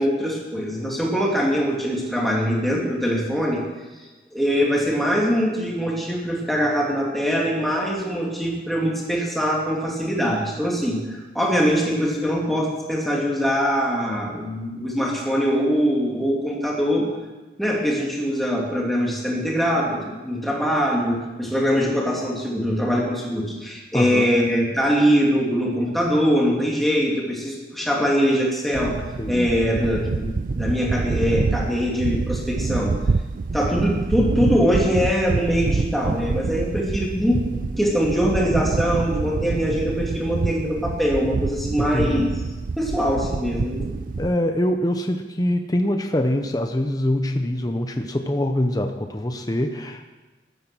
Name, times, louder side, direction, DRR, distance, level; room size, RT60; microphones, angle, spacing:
voice 1, 0.0-3.6 4.3-17.1 17.6-32.9 33.5-37.4 37.8-42.3 42.8-44.0, equal, ahead, -3 dB, 2.9 m, -22 dB
voice 2, 23.9-24.3 29.2-29.5 41.9-42.4 44.2-50.1, left 1 dB, 20° left, 5 dB, 0.8 m, -24 dB
sound 1, 28.7-44.4, right 4 dB, 45° right, 0.4 m, -27 dB
14.5 x 12.0 x 6.2 m, 1.2 s
head